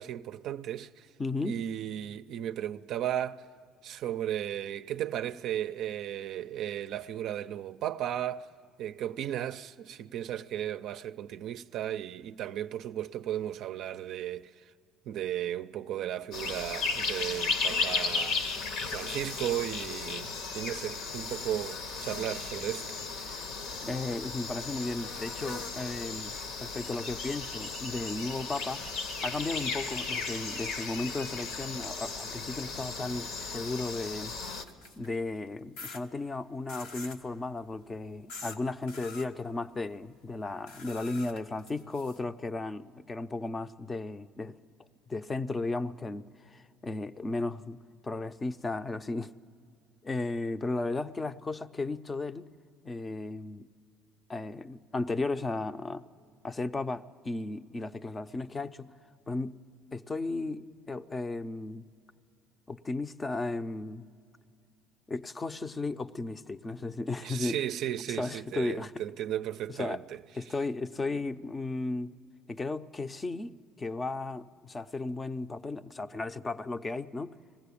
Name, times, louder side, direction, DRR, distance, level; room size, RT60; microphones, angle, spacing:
voice 1, 0.0-1.1 1.4-3.5 3.8-8.5 8.8-14.7 15.1-23.0 67.2-70.2 70.5-70.6, right 11 dB, 60° right, 0.4 m, -35 dB
voice 2, 1.2-1.6 23.2-23.4 23.8-28.8 29.2-34.3 35.0-44.6 45.1-47.8 48.0-49.3 50.0-52.5 52.8-53.7 54.3-56.0 56.4-58.9 59.3-59.6 59.9-61.9 62.7-64.1 65.1-67.6 68.1-68.9 69.8-70.0 70.3-72.1 72.5-77.4, left 3 dB, 20° left, 0.6 m, -35 dB
sound 1, 16.3-34.6, left 4 dB, 70° left, 1.4 m, -35 dB
sound 2, 34.3-35.1 35.8-36.0 36.7-37.2 38.3-38.6 38.9-39.3 40.7-42.2, left 4 dB, 90° left, 1.4 m, -45 dB
20.5 x 15.5 x 8.5 m
cardioid pair, 105°, 0 cm